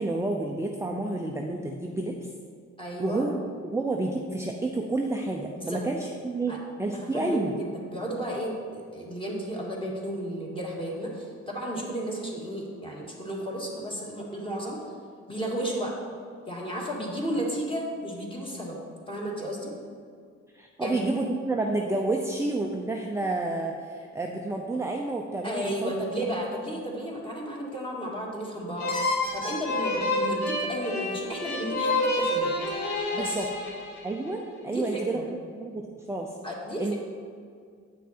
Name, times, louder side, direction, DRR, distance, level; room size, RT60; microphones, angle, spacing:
voice 1, 0.0-2.1 3.0-6.5 6.8-7.6 20.5-25.9 33.1-33.5 34.0-35.2 35.5-36.3 36.8-36.9, right 2 dB, 10° right, 1 dB, 0.6 m, -30 dB
voice 2, 2.8-3.3 5.5-5.8 6.5-6.6 7.1-14.9 15.3-15.9 16.5-18.8 19.1-19.7 20.8-21.0 25.4-32.5 33.2-33.5 34.7-35.3 36.4-36.8, equal, 15° left, -3 dB, 2.0 m, -33 dB
sound 1, 28.8-34.3, left 1 dB, 70° left, 1.6 m, -28 dB
8.3 x 6.0 x 4.3 m, 2.1 s
cardioid pair, 90°, 30 cm